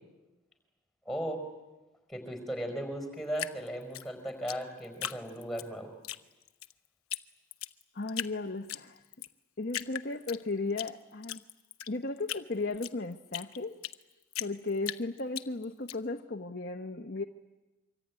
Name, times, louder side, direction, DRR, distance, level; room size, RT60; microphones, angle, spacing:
voice 1, 1.0-1.4 2.1-5.9, equal, ahead, 6 dB, 4.9 m, -36 dB
Drip, 3.4-5.7 6.0-6.7 7.1-7.2 7.5-8.3 8.7-9.3 9.7-10.9 11.2-14.0 14.3-16.0, left 12 dB, 80° left, 1.0 m, -38 dB
voice 2, 7.9-9.0 9.6-11.4 11.9-13.7 14.4-17.2, left 3 dB, 45° left, 3 dB, 1.0 m, -35 dB
25.0 x 24.5 x 9.6 m, 1.1 s
head